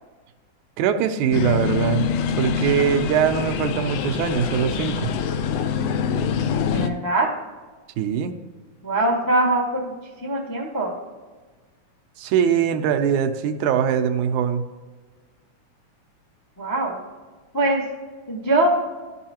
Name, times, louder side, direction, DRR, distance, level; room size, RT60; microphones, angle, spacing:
voice 1, 0.8-2.0 2.4-5.1 8.0-8.3 12.2-14.6, right 8 dB, 85° right, 8 dB, 2.1 m, -22 dB
sound 1, 1.3-6.9, left 7 dB, 90° left, 2.0 m, -25 dB
voice 2, 6.7-7.3 8.8-9.9 10.2-10.9 16.6-17.0 17.5-17.8 18.3-18.7, right 2 dB, 20° left, -3 dB, 0.5 m, -22 dB
13.0 x 5.5 x 2.9 m, 1.3 s
omnidirectional pair, 3.4 m